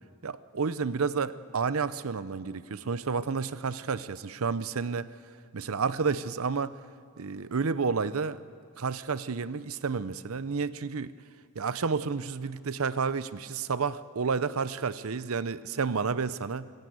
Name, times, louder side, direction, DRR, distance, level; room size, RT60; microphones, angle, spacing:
voice 1, 0.2-5.1 5.5-6.8 7.2-8.4 8.8-11.1 11.5-16.7, right 5 dB, 80° right, 15 dB, 0.7 m, -30 dB
24.0 x 15.5 x 8.1 m, 2.3 s
head